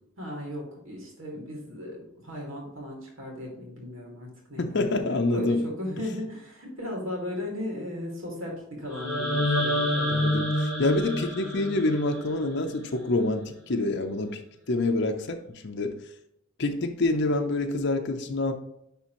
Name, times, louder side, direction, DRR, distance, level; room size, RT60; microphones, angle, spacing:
voice 1, 0.2-10.4, left 1 dB, 80° right, -1 dB, 2.0 m, -36 dB
voice 2, 4.6-5.7 10.1-14.4 14.7-16.0 16.6-18.5, left 2 dB, 60° left, 5 dB, 0.7 m, -27 dB
sound 1, 8.9-12.9, left 1 dB, 5° right, 2.4 m, -28 dB
10.0 x 3.5 x 3.0 m, 0.79 s
head